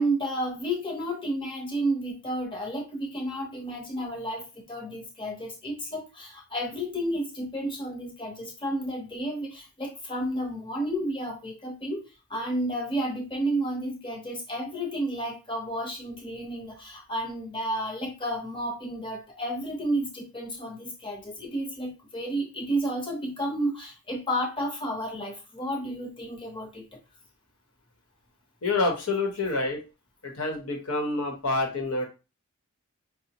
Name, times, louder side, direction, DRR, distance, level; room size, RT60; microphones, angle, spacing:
voice 1, 0.0-12.0 12.3-27.0, right 1 dB, 20° left, 1 dB, 0.8 m, -31 dB
voice 2, 28.6-29.8 30.2-32.1, left 2 dB, 75° left, 2 dB, 0.9 m, -27 dB
5.1 x 2.1 x 2.9 m, 0.30 s
head